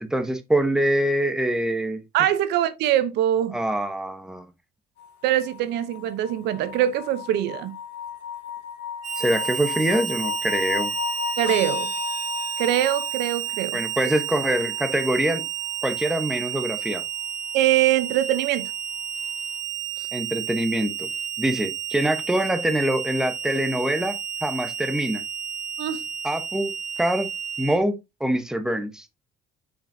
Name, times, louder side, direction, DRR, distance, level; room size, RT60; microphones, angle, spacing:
voice 1, 0.0-2.0 3.5-4.5 9.2-10.9 13.7-15.4 15.8-17.0 20.1-21.1 21.4-25.2 26.2-27.3 27.6-29.0, right 1 dB, 5° right, 1.0 m, -24 dB
voice 2, 2.1-3.6 5.2-7.8 11.4-11.9 12.6-13.8 17.5-18.7 20.0-20.1 25.8-26.0, right 12 dB, 85° right, 0.8 m, -23 dB
sound 1, 5.0-17.0 18.4-18.5, left 8 dB, 90° left, 1.4 m, -35 dB
Harmonica, 9.0-27.8, right 8 dB, 45° right, 1.0 m, -31 dB
7.0 x 5.2 x 2.7 m
cardioid pair, 110°, 17 cm